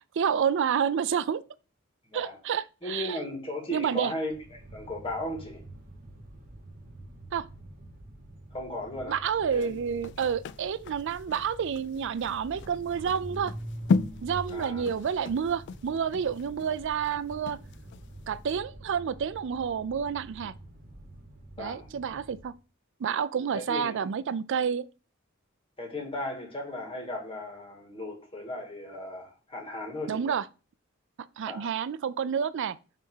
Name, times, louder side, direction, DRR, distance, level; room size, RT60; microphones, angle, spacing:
voice 1, 0.2-1.4 2.1-3.2 3.7-4.1 7.3-7.4 9.1-13.5 14.2-17.6 18.3-20.5 21.6-22.5 23.0-24.9 30.1-30.4 31.4-32.8, right 7 dB, 60° right, 0.4 m, -29 dB
voice 2, 2.8-5.6 8.5-9.2 9.5-9.7 14.5-14.8 21.6-21.9 23.5-24.0 25.8-30.4 31.5-31.7, left 1 dB, 25° left, 2.0 m, -36 dB
sound 1, 4.2-22.6, right 1 dB, 40° right, 1.3 m, -46 dB
sound 2, 9.5-18.1 18.5-18.6, left 4 dB, 55° left, 0.3 m, -34 dB
5.7 x 3.5 x 5.5 m
head